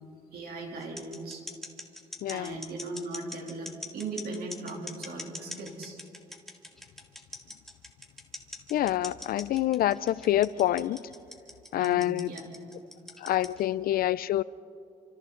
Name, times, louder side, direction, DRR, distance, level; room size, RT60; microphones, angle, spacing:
voice 1, 0.3-1.4 2.3-6.0 11.8-12.4, right 3 dB, 80° right, 3.0 m, -38 dB
sound 1, 0.8-13.6, left 1 dB, ahead, 2.0 m, -42 dB
voice 2, 2.2-2.6 8.7-11.0 11.7-12.3 13.2-14.4, left 13 dB, 70° left, 0.5 m, -26 dB
28.5 x 26.0 x 3.8 m
cardioid pair, 155°, 16 cm